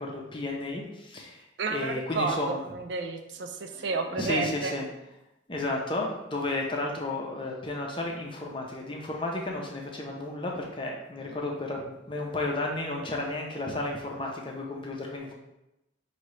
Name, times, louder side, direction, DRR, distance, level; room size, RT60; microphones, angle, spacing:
voice 1, 0.0-2.6 3.7-4.9 5.5-15.3, left 2 dB, 25° left, 0 dB, 0.6 m, -33 dB
voice 2, 1.6-4.7, right 4 dB, 65° right, 6 dB, 0.4 m, -31 dB
5.0 x 2.7 x 3.2 m, 0.91 s
head